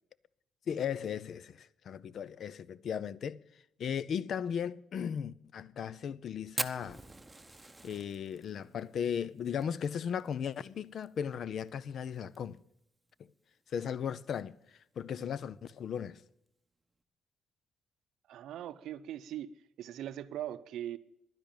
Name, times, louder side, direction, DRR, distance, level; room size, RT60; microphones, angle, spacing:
voice 1, 0.7-3.4 3.8-7.0 7.8-12.6 13.7-16.2, left 8 dB, 60° left, 0.6 m, -36 dB
Fire, 6.6-11.1 11.3-11.4 11.7-11.8 12.2-12.6 13.1-13.2 14.2-14.4, right 2 dB, 10° right, 0.9 m, -41 dB
voice 2, 18.3-19.5 19.8-21.0, right 11 dB, 80° right, 0.6 m, -40 dB
11.0 x 10.5 x 8.7 m
cardioid pair, 90°, 0 cm